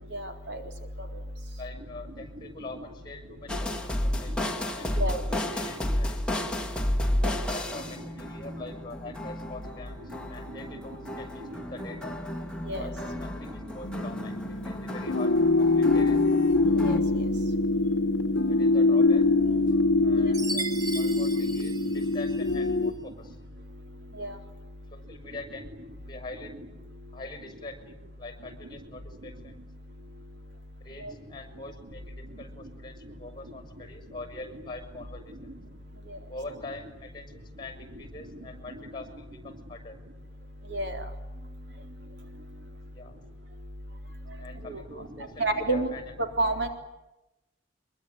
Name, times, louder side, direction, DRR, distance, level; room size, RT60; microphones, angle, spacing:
voice 1, 0.1-0.6 5.0-5.2 7.2-7.3 12.7-12.9 16.8-17.0 24.2-24.4 40.7-41.1 44.6-44.8 45.4-45.9 46.4-46.7, right 2 dB, 65° right, 5 dB, 3.9 m, -29 dB
voice 2, 1.6-6.3 7.5-12.2 12.8-14.3 14.6-16.3 18.4-19.2 20.0-20.7 20.9-23.4 24.9-25.8 26.0-26.5 27.1-29.6 30.8-35.6 36.3-40.0 42.9-43.2 44.4-46.0, left 2 dB, 25° left, 8 dB, 6.3 m, -44 dB
sound 1, 3.5-17.0, left 1 dB, 5° left, 2.3 m, -32 dB
sound 2, 13.8-22.9, left 3 dB, 85° left, 1.0 m, -24 dB
Chime, 20.3-22.7, right 1 dB, 20° right, 1.9 m, -37 dB
24.5 x 23.0 x 9.9 m, 0.94 s
head